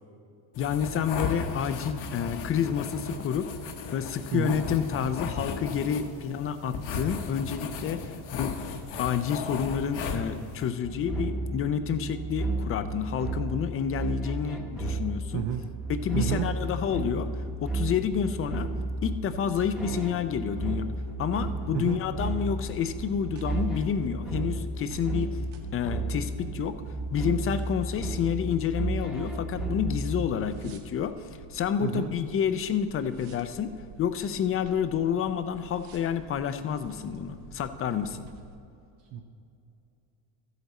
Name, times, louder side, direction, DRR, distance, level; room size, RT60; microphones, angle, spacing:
sound 1, 0.5-10.7, left 5 dB, 70° left, 1.1 m, -36 dB
voice 1, 0.6-3.5 3.9-8.6 9.0-15.5 15.9-17.3 17.6-18.7 19.0-20.9 21.2-25.4 25.7-26.8 27.1-31.2 31.5-33.7 34.0-38.3, left 8 dB, 30° left, 11 dB, 0.4 m, -29 dB
voice 2, 4.3-4.6 15.3-15.6 16.1-16.5 21.7-22.0 31.8-32.1 39.1-39.2, right 9 dB, 60° right, 3 dB, 0.8 m, -30 dB
sound 2, 10.8-30.7, right 2 dB, ahead, 0.9 m, -33 dB
sound 3, 21.3-38.6, right 4 dB, 75° right, 1.3 m, -49 dB
13.5 x 8.0 x 4.1 m, 2.7 s
cardioid pair, 150°, 48 cm